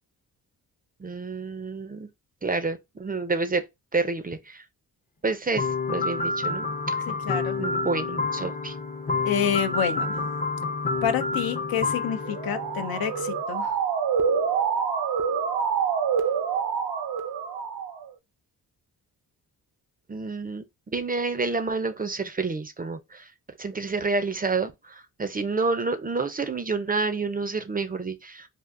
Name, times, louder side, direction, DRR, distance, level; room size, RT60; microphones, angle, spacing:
voice 1, 1.0-2.1 2.4-3.6 3.9-4.6 5.2-7.0 7.6-8.8 20.1-23.3 23.6-28.5, right 3 dB, 25° right, 0.4 m, -29 dB
sound 1, 5.6-13.4, left 3 dB, 25° left, 0.5 m, -29 dB
voice 2, 7.1-7.6 9.2-10.2 11.0-13.8, left 8 dB, 75° left, 0.6 m, -28 dB
Motor vehicle (road) / Siren, 12.2-18.1, right 6 dB, 80° right, 0.6 m, -26 dB
3.5 x 2.5 x 2.5 m
cardioid pair, 80°, 36 cm